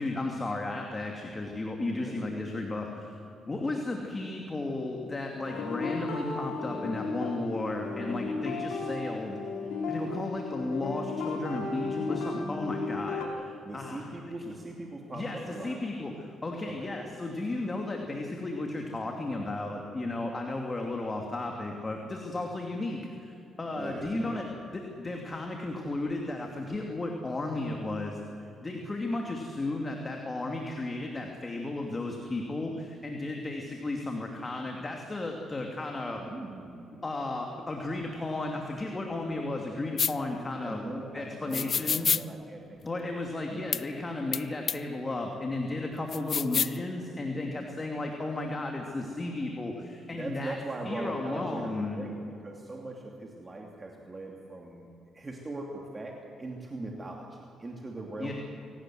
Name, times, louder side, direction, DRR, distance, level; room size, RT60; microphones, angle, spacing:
voice 1, 0.0-3.2 3.5-9.4 9.9-14.1 15.1-15.4 15.6-24.5 24.7-36.2 37.0-42.1 42.8-50.5 50.9-52.0 58.2-58.3, left 2 dB, 25° left, 2 dB, 2.7 m, -34 dB
voice 2, 1.8-2.5 13.6-15.8 16.6-17.1 23.7-24.4 36.2-37.0 40.6-43.6 50.1-54.9 55.1-58.3, right 2 dB, 25° right, 0 dB, 2.8 m, -40 dB
sound 1, 5.4-13.2, left 3 dB, 90° left, 3.5 m, -34 dB
sound 2, 40.0-40.1 41.5-42.2 43.7-43.8 44.3-44.4 44.7-44.8 46.1-46.8, left 7 dB, 50° left, 0.5 m, -27 dB
24.5 x 18.0 x 7.7 m, 2.7 s
cardioid pair, 90°, 0 cm